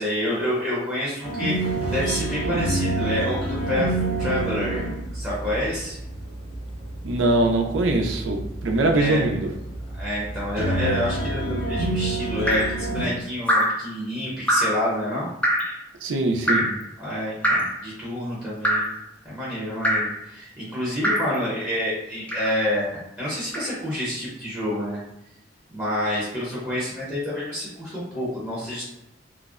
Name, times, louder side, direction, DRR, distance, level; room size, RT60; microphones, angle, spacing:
voice 1, 0.0-4.9 5.1-6.0 8.9-9.3 9.9-15.3 17.0-18.8 19.2-25.0 25.7-28.8, left 1 dB, 10° right, -9 dB, 0.7 m, -28 dB
sound 1, 1.2-13.0, right 2 dB, 75° left, 1.4 m, -28 dB
voice 2, 7.0-9.5 16.0-16.7, right 2 dB, 85° right, 3 dB, 0.4 m, -22 dB
Drip, 12.5-12.8 13.5-13.8 14.5-14.8 15.4-15.8 16.5-16.8 17.4-17.8 18.6-19.0 19.8-20.2 21.0-21.4 22.3-22.6 23.5-23.7, equal, 5° left, 0.3 m, -23 dB
2.5 x 2.0 x 2.4 m, 0.85 s
head